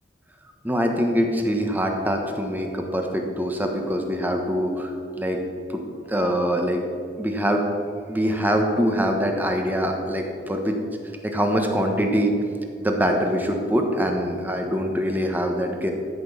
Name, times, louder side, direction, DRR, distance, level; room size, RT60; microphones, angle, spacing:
voice 1, 0.6-5.4 5.7-5.8 6.1-6.8 7.2-7.6 8.1-10.8 11.2-12.3 12.8-15.9, equal, 10° right, 3 dB, 1.2 m, -24 dB
13.5 x 6.1 x 7.0 m, 2.5 s
head